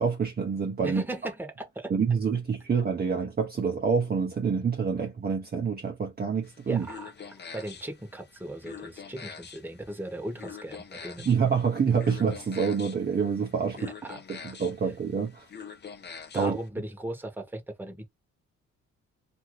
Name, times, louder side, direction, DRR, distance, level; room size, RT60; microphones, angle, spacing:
voice 1, 0.0-1.0 1.9-6.9 11.3-13.9 14.3-15.5 16.3-16.6, right 6 dB, 30° right, 0.8 m, -27 dB
voice 2, 0.8-1.9 6.7-11.3 13.8-14.2 14.8-14.9 16.3-18.1, right 1 dB, 5° right, 1.1 m, -38 dB
sound 1, 6.4-16.7, left 6 dB, 35° left, 0.7 m, -45 dB
2.7 x 2.6 x 3.1 m
cardioid pair, 90°, 30 cm